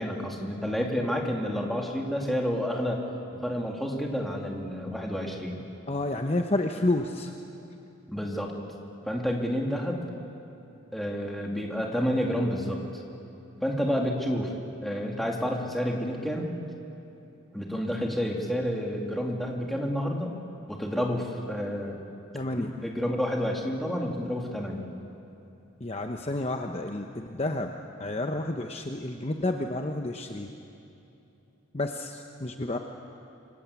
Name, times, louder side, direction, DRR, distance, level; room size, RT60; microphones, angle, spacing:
voice 1, 0.0-3.0 3.4-5.6 8.1-8.5 9.1-10.0 10.9-12.8 13.6-14.5 14.8-16.5 17.5-20.4 20.7-22.0 22.6-24.9, equal, ahead, 0 dB, 2.6 m, -29 dB
voice 2, 5.9-7.3 22.3-22.7 25.8-27.7 28.0-30.5 31.7-32.8, left 2 dB, 30° left, 4 dB, 0.9 m, -30 dB
27.5 x 23.5 x 8.4 m, 2.8 s
head